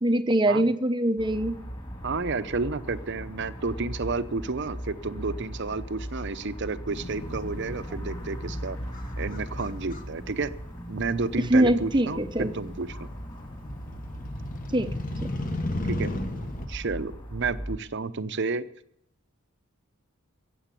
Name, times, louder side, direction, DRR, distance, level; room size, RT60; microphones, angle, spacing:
voice 1, 0.0-1.6 11.5-12.5 14.7-14.9, right 1 dB, 20° right, 10 dB, 0.8 m, -23 dB
sound 1, 1.2-17.8, equal, 25° left, 3.1 m, -39 dB
voice 2, 2.0-8.8 9.2-10.5 10.9-13.1 15.8-16.1 16.7-18.7, right 4 dB, 50° right, 12 dB, 0.8 m, -31 dB
Motorcycle, 6.9-16.7, left 1 dB, 40° left, 1.4 m, -36 dB
15.0 x 8.0 x 9.9 m, 0.75 s
head